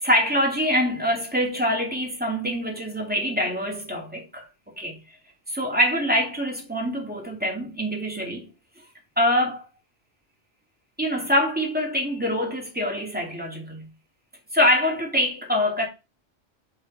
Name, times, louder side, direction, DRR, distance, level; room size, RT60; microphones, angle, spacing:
voice 1, 0.0-5.0 5.5-8.5 9.2-9.6 11.0-13.9 14.5-15.9, equal, 10° right, 2.6 m, -24 dB
5.6 x 5.4 x 4.8 m
omnidirectional pair, 1.1 m